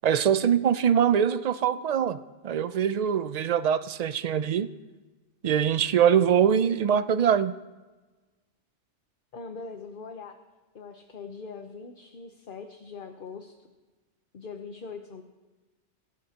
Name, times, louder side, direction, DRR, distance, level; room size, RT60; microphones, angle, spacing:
voice 1, 0.0-2.2 2.4-4.7 5.4-7.5, right 8 dB, 60° right, 13 dB, 0.4 m, -23 dB
voice 2, 9.3-10.4 10.7-13.6 14.3-15.2, left 4 dB, 50° left, 5 dB, 1.0 m, -41 dB
23.0 x 16.5 x 2.9 m, 1.2 s
omnidirectional pair, 1.2 m